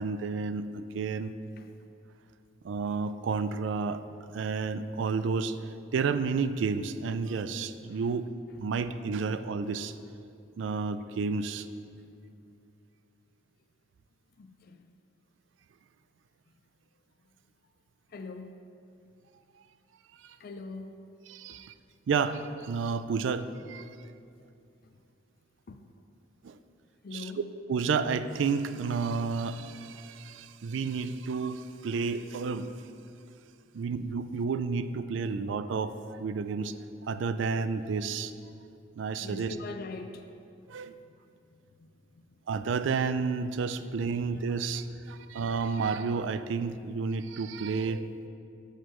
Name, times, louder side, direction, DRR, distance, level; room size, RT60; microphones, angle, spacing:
voice 1, 0.0-1.3 2.6-4.0 4.3-5.6 5.9-8.3 8.6-9.9 10.6-11.7 20.2-20.4 21.3-21.7 22.1-23.9 26.4-26.6 27.1-27.3 27.7-32.7 33.7-38.3 39.0-39.5 40.7-41.0 42.5-48.1, right 5 dB, 75° right, 12 dB, 0.3 m, -31 dB
voice 2, 14.4-14.8 18.1-18.6 20.4-21.0 21.5-21.6 24.8-25.0 25.7-25.9 27.0-27.4 39.2-40.3 40.7-40.8 41.0-42.4 44.1-44.3, left 3 dB, 50° left, 6 dB, 0.4 m, -44 dB
11.0 x 6.5 x 3.0 m, 2.5 s
head